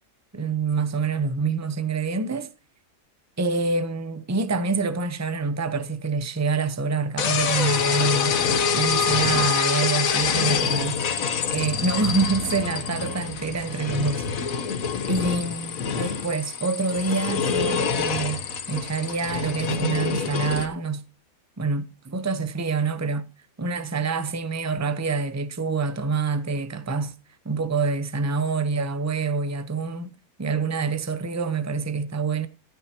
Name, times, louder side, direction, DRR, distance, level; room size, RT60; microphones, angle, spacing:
voice 1, 0.3-2.5 3.4-8.4 8.7-11.0 11.5-14.5 15.1-21.0 21.6-23.2 23.6-27.1 27.4-30.1 30.4-32.5, right 4 dB, 15° right, 0.6 m, -26 dB
sound 1, 7.2-20.7, left 6 dB, 70° left, 1.5 m, -26 dB
15.5 x 13.0 x 2.9 m
omnidirectional pair, 1.5 m